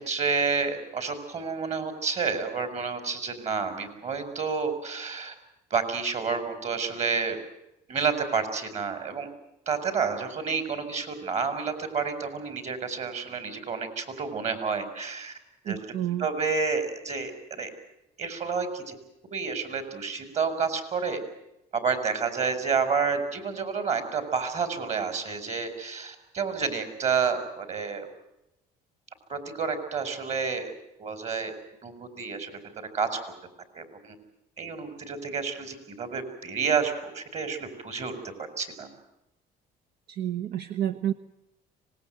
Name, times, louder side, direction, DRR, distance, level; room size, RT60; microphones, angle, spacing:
voice 1, 0.0-5.3 5.7-7.4 7.9-9.3 9.7-15.3 15.6-15.8 16.2-17.3 17.6-17.7 18.2-19.0 19.3-21.2 21.7-28.1 29.3-30.7 31.0-31.5 31.8-32.5 32.9-33.2 33.7-34.2 34.6-38.1 38.6-38.9, right 5 dB, 40° right, 9 dB, 5.5 m, -29 dB
voice 2, 15.7-16.3 40.1-41.1, right 11 dB, 70° right, 8 dB, 1.1 m, -29 dB
25.0 x 20.0 x 9.3 m, 0.90 s
cardioid pair, 110°, 17 cm